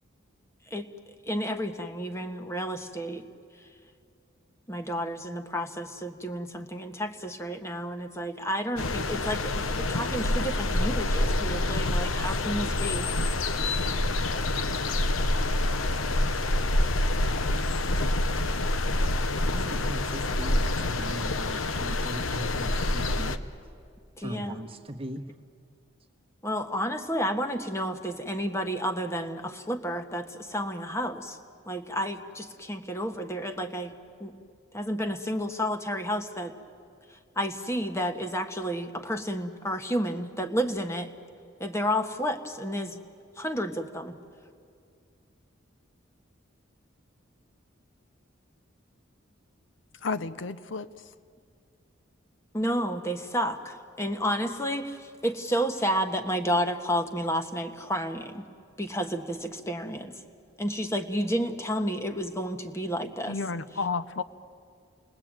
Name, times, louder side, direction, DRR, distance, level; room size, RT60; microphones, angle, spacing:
voice 1, 1.3-3.2 4.7-13.1 24.2-24.6 26.4-31.4 31.7-33.9 34.2-34.3 34.7-36.5 37.3-41.1 41.6-43.0 43.4-44.2 52.5-58.5 58.8-60.1 60.6-63.4, equal, 15° left, 6 dB, 1.4 m, -31 dB
sound 1, 8.8-23.4, left 2 dB, 85° left, 1.0 m, -27 dB
voice 2, 19.5-23.4 24.2-25.2, right 1 dB, 25° right, 6 dB, 1.3 m, -39 dB
voice 3, 50.0-50.9 63.3-64.2, left 4 dB, 65° left, 13 dB, 0.7 m, -31 dB
29.5 x 21.0 x 8.9 m, 2.2 s
head